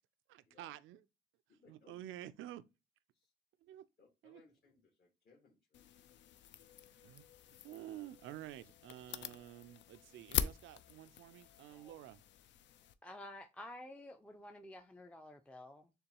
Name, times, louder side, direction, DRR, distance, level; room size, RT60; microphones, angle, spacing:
voice 1, 0.3-1.0 1.7-2.6 3.6-3.9 4.2-4.4 7.0-12.2, right 13 dB, 80° right, 0.4 m, -50 dB
voice 2, 1.5-2.0 3.1-3.3 4.0-5.9, left 4 dB, 50° left, 1.5 m, -67 dB
sound 1, 5.7-12.9, left 9 dB, 65° left, 0.4 m, -44 dB
voice 3, 13.0-15.9, left 1 dB, 5° left, 0.4 m, -51 dB
6.7 x 2.3 x 2.9 m
cardioid pair, 90°, 20 cm